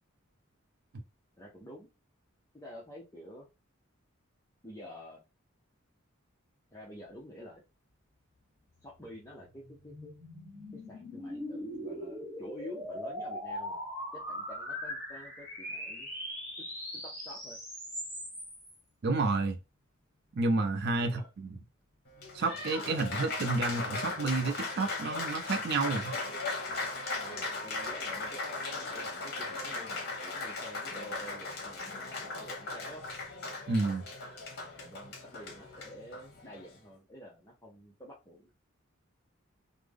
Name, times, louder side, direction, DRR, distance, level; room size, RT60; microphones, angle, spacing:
voice 1, 1.4-1.9 2.5-3.5 4.6-5.2 6.7-7.6 8.8-10.2 10.7-13.9 14.1-16.1 16.6-16.7 17.0-17.6 21.0-21.3 27.2-33.0 34.8-38.5, left 1 dB, 15° left, 0.6 m, -49 dB
sound 1, 9.0-18.7, equal, 10° right, 1.5 m, -40 dB
voice 2, 19.0-19.6 20.4-21.6 22.3-26.1 33.7-34.1, right 3 dB, 50° right, 0.4 m, -30 dB
Applause, 22.1-36.8, left 3 dB, 50° left, 0.9 m, -38 dB
3.4 x 2.0 x 3.4 m
head